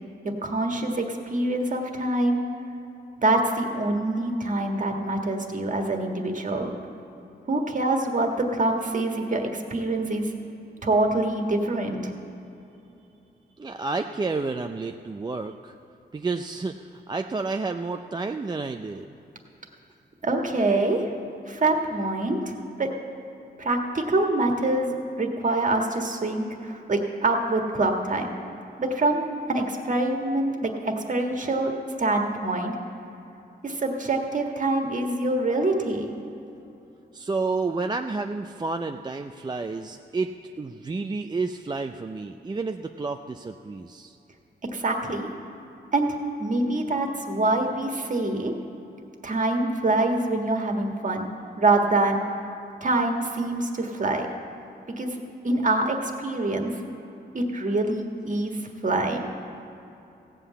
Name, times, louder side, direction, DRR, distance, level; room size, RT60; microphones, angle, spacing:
voice 1, 0.2-2.4 3.2-6.7 7.5-10.3 10.8-12.1 20.2-21.0 21.5-22.9 23.6-28.3 28.8-31.7 32.0-32.7 33.6-36.1 44.7-45.3 45.9-48.5 49.2-51.3 51.6-52.3 52.8-54.3 55.0-56.7 57.3-59.3, right 2 dB, 45° right, 2 dB, 1.6 m, -25 dB
voice 2, 13.6-15.7 16.1-19.1 37.1-44.2, right 3 dB, 25° right, 5 dB, 0.4 m, -30 dB
16.0 x 5.7 x 8.2 m, 2.9 s
cardioid pair, 85°, 18 cm